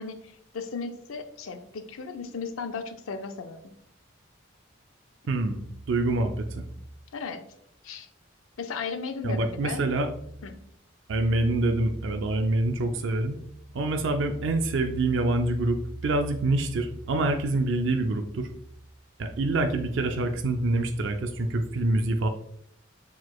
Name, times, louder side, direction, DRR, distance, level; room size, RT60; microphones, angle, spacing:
voice 1, 0.0-3.6 7.1-7.4 7.8-8.1 8.6-9.8 10.4-10.6, left 5 dB, 85° left, 8 dB, 0.5 m, -36 dB
voice 2, 5.3-5.6 5.9-6.6 9.2-10.1 11.1-13.4 13.7-18.5 19.2-22.3, right 2 dB, 65° right, 6 dB, 0.4 m, -26 dB
4.5 x 4.0 x 2.3 m, 0.70 s
head